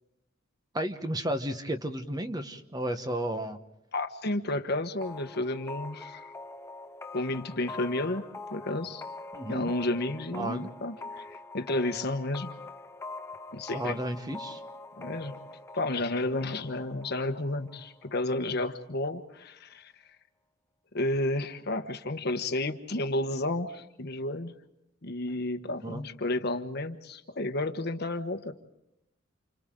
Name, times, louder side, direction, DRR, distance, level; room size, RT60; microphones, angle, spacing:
voice 1, 0.7-3.6 9.3-9.7 10.3-10.7 13.7-14.6 25.8-26.1, right 1 dB, 20° right, 8 dB, 1.2 m, -33 dB
voice 2, 3.9-6.3 7.1-9.0 9.5-12.5 13.5-14.0 15.0-15.4 15.7-19.9 20.9-24.5 25.0-28.5, left 2 dB, 55° left, 6 dB, 1.3 m, -31 dB
sound 1, 5.0-18.5, left 3 dB, 15° left, 0.7 m, -44 dB
30.0 x 28.5 x 3.8 m, 0.86 s
head